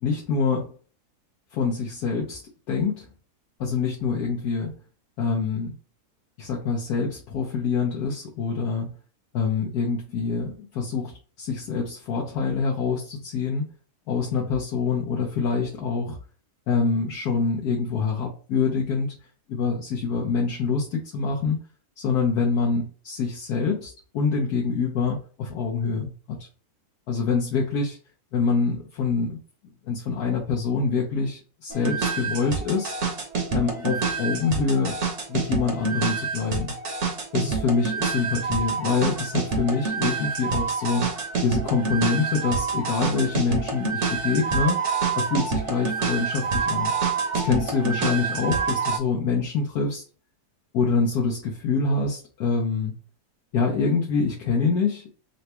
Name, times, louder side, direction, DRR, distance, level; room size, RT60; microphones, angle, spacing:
voice 1, 0.0-0.7 1.5-2.4 2.7-3.1 3.6-4.7 5.2-5.7 6.4-8.9 9.3-13.7 14.1-16.2 16.7-19.2 19.5-21.6 22.0-26.5 27.1-28.0 28.3-29.4 29.8-33.0 33.5-35.0 35.3-36.7 37.3-41.1 41.4-44.8 45.1-46.9 47.4-50.0 50.7-52.9 53.5-55.0, left 5 dB, 75° left, -2 dB, 1.3 m, -25 dB
sound 1, 31.7-49.0, right 5 dB, 50° right, 1.1 m, -27 dB
3.9 x 2.2 x 4.3 m, 0.38 s
omnidirectional pair, 1.7 m